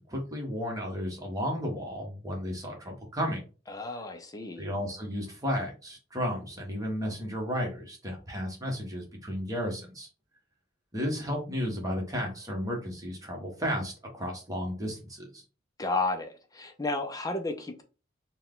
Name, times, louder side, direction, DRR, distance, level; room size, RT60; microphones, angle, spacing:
voice 1, 0.1-3.4 4.6-10.1 10.9-15.4, equal, 20° right, 1.3 m, -33 dB
voice 2, 3.7-4.7 15.8-17.8, left 2 dB, 20° left, 0.5 m, -32 dB
4.4 x 2.3 x 3.7 m
head